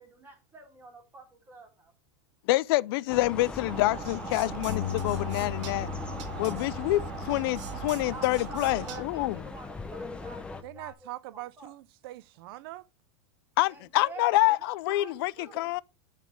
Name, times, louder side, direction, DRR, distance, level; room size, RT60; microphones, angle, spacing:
voice 1, 0.0-1.9 8.1-11.7 13.7-15.7, right 3 dB, 15° right, 2.3 m, -47 dB
voice 2, 2.5-5.9 6.4-9.4 13.6-15.8, left 18 dB, 50° left, 0.4 m, -27 dB
sound 1, 3.1-10.6, left 3 dB, 5° left, 0.6 m, -40 dB
sound 2, 3.6-9.0, right 8 dB, 85° right, 1.7 m, -40 dB
Bass guitar, 4.7-9.1 9.8-10.9, left 12 dB, 70° left, 1.1 m, -39 dB
voice 3, 10.6-12.8, right 17 dB, 50° right, 0.5 m, -42 dB
10.5 x 4.2 x 4.6 m
supercardioid pair, 165°, 15 cm